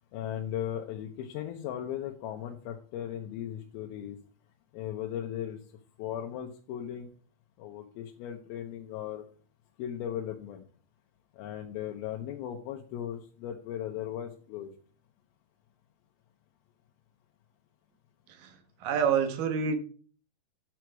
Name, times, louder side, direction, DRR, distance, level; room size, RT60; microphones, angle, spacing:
voice 1, 0.1-4.2 4.7-5.6 6.0-7.1 7.6-9.2 9.8-10.6 11.3-14.7, left 10 dB, 85° left, 2 dB, 2.7 m, -37 dB
voice 2, 18.8-19.8, right 6 dB, 70° right, 6 dB, 2.7 m, -27 dB
9.2 x 6.2 x 4.6 m, 0.42 s
omnidirectional pair, 4.3 m